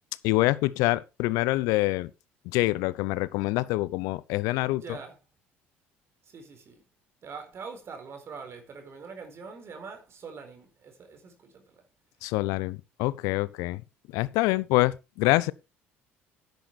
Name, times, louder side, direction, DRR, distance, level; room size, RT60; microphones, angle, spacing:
voice 1, 0.2-2.1 2.5-4.8 12.2-13.8 14.1-15.5, left 20 dB, 70° left, 0.7 m, -25 dB
voice 2, 4.7-5.2 6.2-6.8 7.2-11.8, right 5 dB, 45° right, 4.2 m, -43 dB
10.0 x 9.2 x 4.2 m
hypercardioid pair, 60°, 6 cm